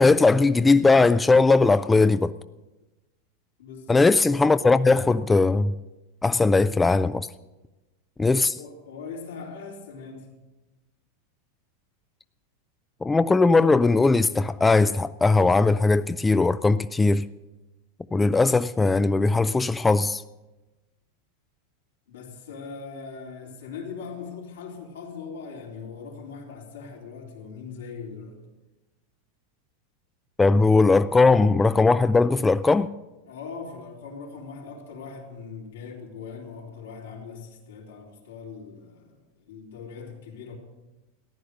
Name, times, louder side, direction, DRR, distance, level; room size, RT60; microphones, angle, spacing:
voice 1, 0.0-2.3 3.9-5.7 6.2-7.3 8.2-8.6 13.0-17.2 18.1-20.2 30.4-32.9, left 3 dB, 10° left, 0.4 m, -19 dB
voice 2, 3.6-4.1 8.6-10.4 22.1-28.4 33.3-40.6, left 5 dB, 90° left, 3.7 m, -40 dB
14.5 x 10.5 x 6.7 m
hypercardioid pair, 120°, 0 cm